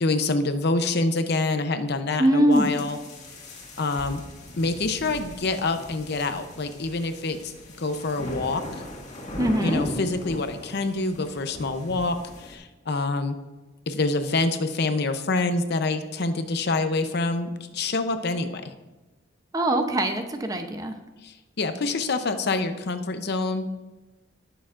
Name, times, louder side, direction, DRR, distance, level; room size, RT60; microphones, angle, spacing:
voice 1, 0.0-3.0 3.8-4.2 4.6-7.5 7.8-8.6 9.6-13.4 13.9-18.7 21.2-23.7, left 3 dB, 60° left, 8 dB, 0.7 m, -26 dB
voice 2, 2.2-2.7 9.4-9.9 19.5-20.9, right 1 dB, 20° right, 6 dB, 0.7 m, -22 dB
sound 1, 2.5-12.6, left 1 dB, 40° left, 1.9 m, -38 dB
17.5 x 6.8 x 2.5 m, 1.1 s
head